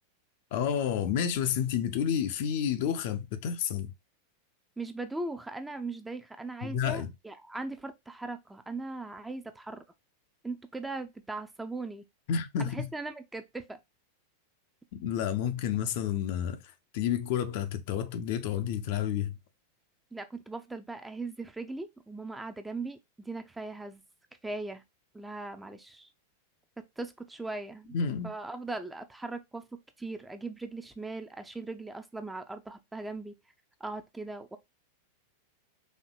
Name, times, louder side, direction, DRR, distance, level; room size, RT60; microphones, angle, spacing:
voice 1, 0.5-3.9 6.6-7.1 12.3-12.9 14.9-19.4 27.9-28.3, left 8 dB, 50° left, 0.5 m, -30 dB
voice 2, 4.8-9.8 10.4-12.1 12.6-13.8 20.1-24.0 24.4-24.8 25.1-26.1 26.8-28.0 28.2-29.6 30.0-33.4 33.8-34.6, right 3 dB, 10° right, 0.5 m, -39 dB
4.3 x 2.8 x 2.3 m
figure-of-eight pair, 90°, 0 cm